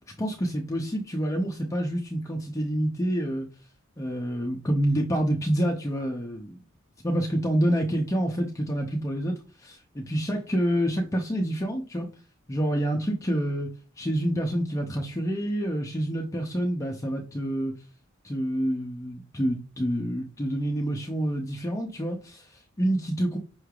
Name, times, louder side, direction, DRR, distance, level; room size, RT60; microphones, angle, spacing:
voice 1, 0.2-3.5 4.0-6.6 7.0-12.1 12.5-13.7 14.0-17.7 18.2-23.4, equal, 15° left, 0.5 m, -27 dB
5.7 x 3.1 x 2.3 m
head